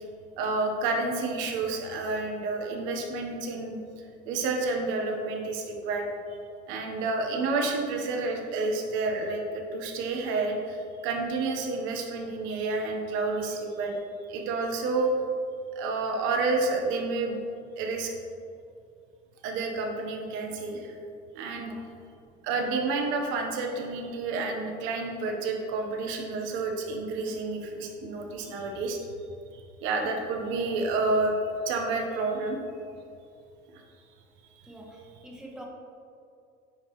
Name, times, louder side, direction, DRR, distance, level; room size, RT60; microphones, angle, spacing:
voice 1, 0.4-3.8 4.3-6.1 6.7-14.0 14.3-15.1 15.7-17.4 17.8-18.1 19.4-20.9 21.3-21.7 22.4-29.0 29.5-31.4 31.6-32.6, right 3 dB, 75° right, 2 dB, 1.1 m, -29 dB
voice 2, 21.5-21.9 34.7-35.6, right 1 dB, 5° right, -2 dB, 1.1 m, -46 dB
9.3 x 5.0 x 3.1 m, 2.5 s
cardioid pair, 150°, 20 cm